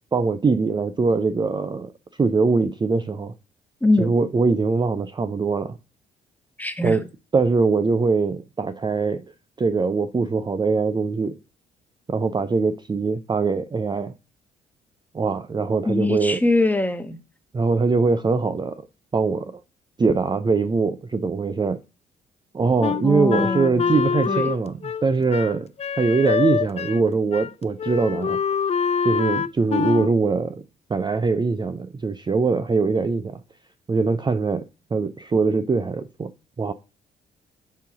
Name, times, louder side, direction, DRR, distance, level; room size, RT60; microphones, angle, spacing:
voice 1, 0.1-1.9 2.2-3.3 4.0-5.8 6.8-7.0 7.3-9.2 9.6-11.4 12.1-14.1 15.1-16.4 17.5-18.8 19.1-19.5 20.0-21.8 22.5-25.7 26.0-28.4 29.0-30.6 30.9-33.4 33.9-34.6 34.9-36.3 36.6-36.7, right 4 dB, 20° right, 0.5 m, -22 dB
voice 2, 3.8-4.1 6.6-7.0 15.9-17.2 23.0-23.9 24.3-24.5, left 2 dB, 10° left, 1.2 m, -22 dB
Wind instrument woodwind instrument, 22.8-27.1 27.3-27.5 27.8-30.1, left 7 dB, 30° left, 0.4 m, -25 dB
7.3 x 3.8 x 4.8 m
hypercardioid pair, 45°, 21 cm